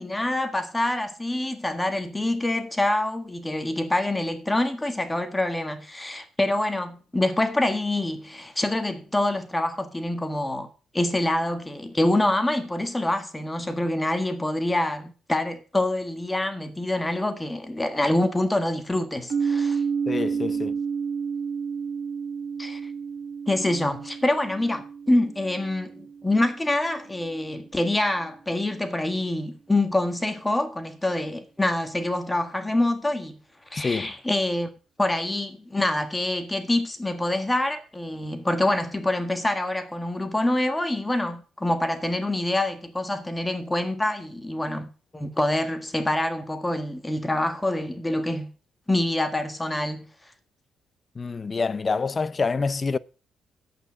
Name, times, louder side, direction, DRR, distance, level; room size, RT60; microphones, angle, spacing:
voice 1, 0.0-10.7 10.9-19.8 22.6-22.9 23.5-33.4 33.7-34.7 35.0-48.5 48.9-50.1, left 1 dB, 15° left, 1.4 m, -26 dB
sound 1, 19.3-27.1, right 6 dB, 60° right, 1.4 m, -30 dB
voice 2, 20.1-20.8 33.8-34.1 51.2-53.0, left 4 dB, 35° left, 0.5 m, -26 dB
9.1 x 8.3 x 6.1 m
cardioid pair, 95°, 0 cm